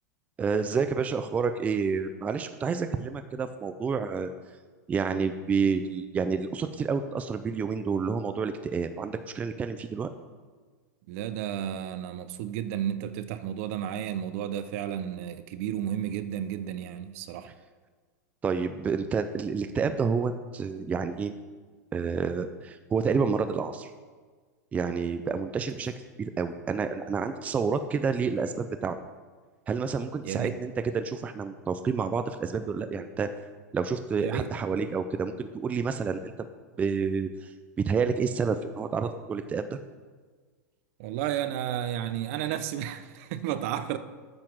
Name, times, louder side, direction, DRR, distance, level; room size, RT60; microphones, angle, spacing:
voice 1, 0.4-4.3 4.9-10.1 18.4-21.3 21.9-23.9 24.7-25.9 26.2-29.0 29.7-33.3 33.7-36.3 36.8-37.5 37.8-39.8, right 5 dB, 15° right, 9 dB, 0.4 m, -29 dB
voice 2, 11.1-17.5 30.2-30.6 34.2-34.5 41.0-44.0, right 10 dB, 55° right, 11 dB, 0.7 m, -32 dB
8.8 x 5.8 x 6.2 m, 1.5 s
supercardioid pair, 135°, 9 cm